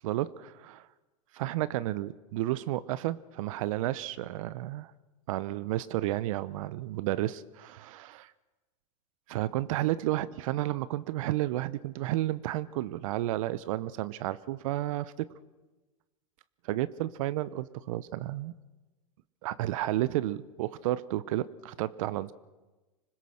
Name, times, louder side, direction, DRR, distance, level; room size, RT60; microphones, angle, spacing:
voice 1, 0.0-0.9 1.3-4.9 5.3-8.3 9.3-15.3 16.6-18.5 19.4-22.3, right 15 dB, 65° right, 17 dB, 0.8 m, -32 dB
25.5 x 21.0 x 6.5 m, 1.2 s
hypercardioid pair, 105°, 19 cm